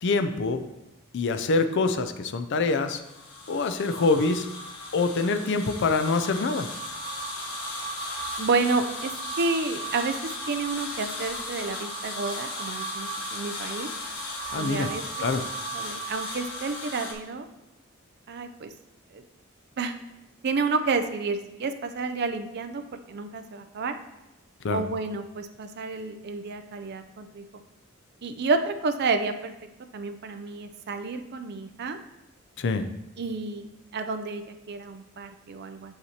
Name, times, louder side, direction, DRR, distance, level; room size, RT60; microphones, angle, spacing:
voice 1, 0.0-0.6 1.1-3.0 3.5-4.5 4.9-6.7 14.5-14.9 15.2-15.4 24.6-24.8 32.6-32.9, left 3 dB, 55° left, 9 dB, 0.5 m, -25 dB
sound 1, 3.0-17.1, equal, 85° left, 1.2 m, -35 dB
voice 2, 8.4-9.1 9.4-10.2 10.5-13.9 14.5-15.0 15.7-17.5 18.3-18.7 19.1-19.2 19.8-19.9 20.4-22.8 23.1-23.9 24.7-27.5 28.2-29.5 29.9-32.0 33.2-33.7 33.9-36.0, right 4 dB, 50° right, 8 dB, 0.5 m, -30 dB
7.7 x 5.7 x 2.9 m, 0.94 s
head